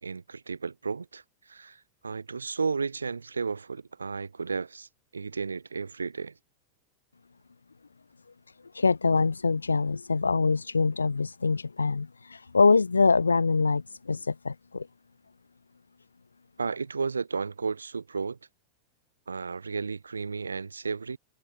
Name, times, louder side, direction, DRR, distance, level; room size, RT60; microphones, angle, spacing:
voice 1, 0.0-1.2 1.5-1.8 2.0-4.9 5.1-6.3 16.6-18.4 19.3-21.2, right 5 dB, 75° right, 1.5 m, -33 dB
voice 2, 8.7-14.9, left 4 dB, 75° left, 0.6 m, -24 dB
figure-of-eight pair, 90°, 0 cm